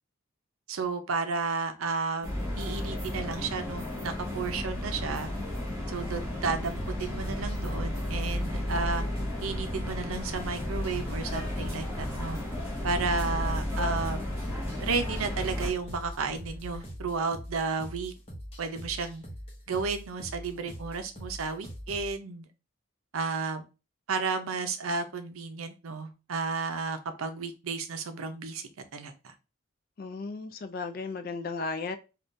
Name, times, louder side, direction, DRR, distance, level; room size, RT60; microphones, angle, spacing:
voice 1, 0.7-5.3 5.9-9.0 9.4-12.4 12.8-14.3 14.6-18.1 18.6-19.2 19.7-22.5 23.1-23.7 24.1-29.3, right 4 dB, 85° right, 0.5 m, -33 dB
sound 1, 2.2-15.7, left 1 dB, 15° right, 0.8 m, -33 dB
sound 2, 5.1-16.9, equal, 45° right, 1.7 m, -45 dB
sound 3, 6.8-22.1, equal, 25° left, 0.8 m, -43 dB
voice 2, 30.0-32.0, left 4 dB, 45° left, 0.3 m, -35 dB
3.6 x 2.3 x 2.6 m
head